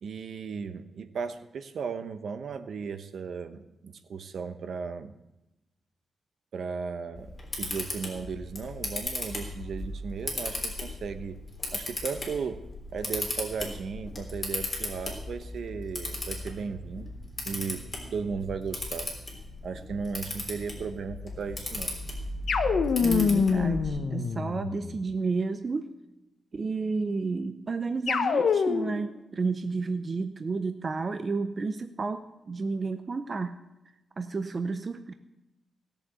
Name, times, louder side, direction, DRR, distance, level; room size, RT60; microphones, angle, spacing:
voice 1, 0.0-5.1 6.5-7.3 7.6-11.4 11.7-12.6 12.9-19.1 19.4-21.9, right 5 dB, 65° right, 10 dB, 0.9 m, -36 dB
Camera, 7.2-23.9, left 2 dB, 20° left, 3.4 m, -36 dB
sound 1, 22.5-25.0 28.1-29.1, left 6 dB, 70° left, 1.0 m, -26 dB
voice 2, 23.0-25.8 26.5-33.6 34.2-35.1, right 4 dB, 35° right, 9 dB, 0.6 m, -31 dB
16.5 x 7.1 x 8.2 m, 0.96 s
wide cardioid pair, 155°, 0 cm